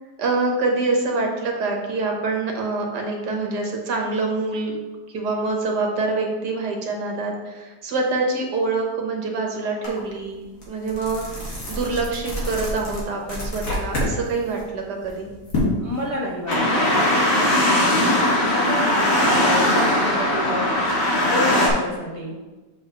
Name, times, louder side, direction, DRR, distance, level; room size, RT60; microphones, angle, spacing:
voice 1, 0.2-4.7 5.1-15.3 18.0-18.3 19.0-19.4, right 3 dB, 70° right, 1 dB, 1.6 m, -26 dB
sound 1, 9.8-10.0 10.4-14.1 14.5-16.5, left 1 dB, 60° left, 2.5 m, -28 dB
voice 2, 15.8-18.0 18.4-20.7 21.2-22.4, equal, 25° left, -5 dB, 0.9 m, -30 dB
sound 2, 16.5-21.7, left 1 dB, 80° left, 2.3 m, -19 dB
7.7 x 6.3 x 3.0 m, 1.2 s
omnidirectional pair, 1.9 m